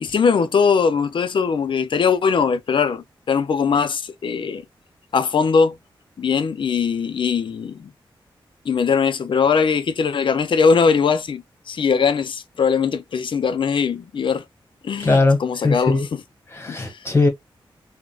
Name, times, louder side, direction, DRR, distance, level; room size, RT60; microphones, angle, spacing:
voice 1, 0.0-4.6 5.1-5.8 6.2-7.9 8.7-14.4 14.8-16.2 16.7-17.0, left 5 dB, 65° left, 0.5 m, -20 dB
voice 2, 15.0-16.1 16.5-17.3, left 3 dB, 30° left, 1.5 m, -19 dB
3.8 x 2.2 x 2.3 m
cardioid pair, 65°, 9 cm